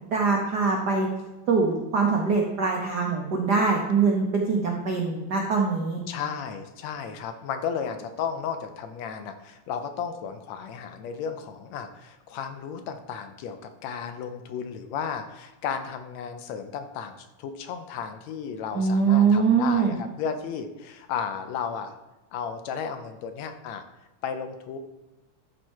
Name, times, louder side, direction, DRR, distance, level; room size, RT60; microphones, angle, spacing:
voice 1, 0.1-1.1 1.5-6.0 18.7-19.9, right 5 dB, 90° right, 0 dB, 0.9 m, -23 dB
voice 2, 6.1-22.0 22.3-23.8 24.2-24.8, left 7 dB, 75° left, 7 dB, 1.8 m, -34 dB
12.5 x 4.7 x 4.4 m, 1.1 s
omnidirectional pair, 3.5 m